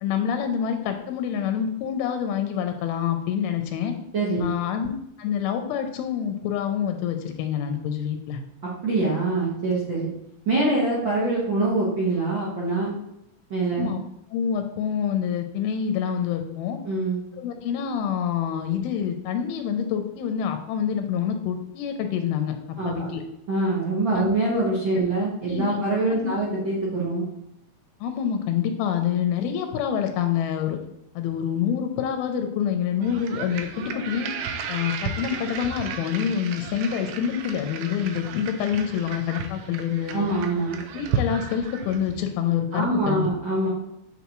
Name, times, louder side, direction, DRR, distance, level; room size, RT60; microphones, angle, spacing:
voice 1, 0.0-4.0 4.4-4.9 5.2-8.4 13.8-14.0 14.3-16.8 17.4-22.5 22.8-23.2 24.2-24.6 25.5-25.8 26.1-26.4 28.0-30.8 31.2-34.3 34.7-40.2 40.9-43.3, left 8 dB, 90° left, 6 dB, 2.5 m, -27 dB
voice 2, 4.1-4.5 8.6-10.1 10.5-12.9 13.5-13.9 16.8-17.2 22.8-23.1 23.5-27.2 40.1-40.8 42.7-43.7, right 2 dB, 70° right, -7 dB, 1.1 m, -24 dB
sound 1, 33.0-42.3, right 5 dB, 90° right, 1.7 m, -34 dB
8.2 x 3.8 x 3.0 m, 0.78 s
omnidirectional pair, 4.2 m